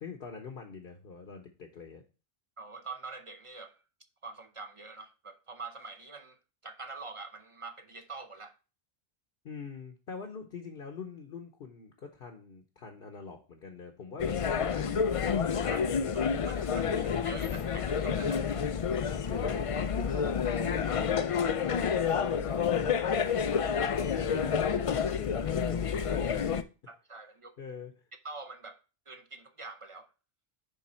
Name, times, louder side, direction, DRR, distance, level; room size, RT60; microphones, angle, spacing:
voice 1, 0.0-2.0 9.4-15.3 16.7-17.3 19.3-23.1 23.6-26.6 27.6-28.1, left 5 dB, 65° left, 1.1 m, -44 dB
voice 2, 2.6-3.8 4.2-8.5 15.6-16.9 17.2-18.5 26.9-27.5 28.2-28.8 29.1-30.1, right 3 dB, 40° right, 0.6 m, -45 dB
sound 1, 14.2-26.6, left 6 dB, 50° left, 0.4 m, -29 dB
10.0 x 3.6 x 4.3 m
omnidirectional pair, 1.0 m